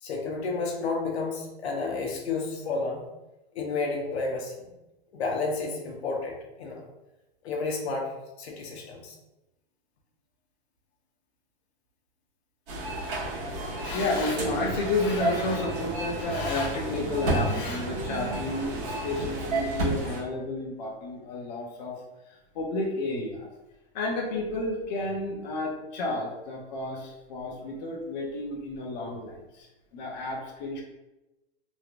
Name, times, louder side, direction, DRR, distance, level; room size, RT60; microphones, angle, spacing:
voice 1, 0.0-3.1 3.5-4.7 5.1-6.8 7.4-9.2, left 3 dB, 80° left, 0 dB, 0.9 m, -31 dB
sound 1, 12.7-20.2, right 2 dB, 35° right, 1.4 m, -32 dB
voice 2, 13.8-23.5 23.9-30.8, left 2 dB, 40° left, -1 dB, 0.7 m, -31 dB
3.1 x 2.9 x 2.5 m, 0.99 s
supercardioid pair, 165°, 32 cm